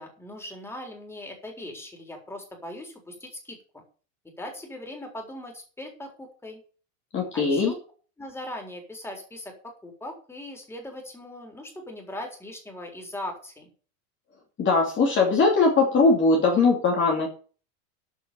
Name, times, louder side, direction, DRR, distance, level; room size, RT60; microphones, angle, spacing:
voice 1, 0.0-3.8 4.2-6.6 7.3-7.7 8.2-13.7, left 1 dB, 5° left, 1 dB, 4.0 m, -39 dB
voice 2, 7.1-7.7 14.6-17.3, left 3 dB, 25° left, -1 dB, 2.8 m, -20 dB
13.5 x 5.9 x 7.0 m, 0.39 s
supercardioid pair, 145°, 47 cm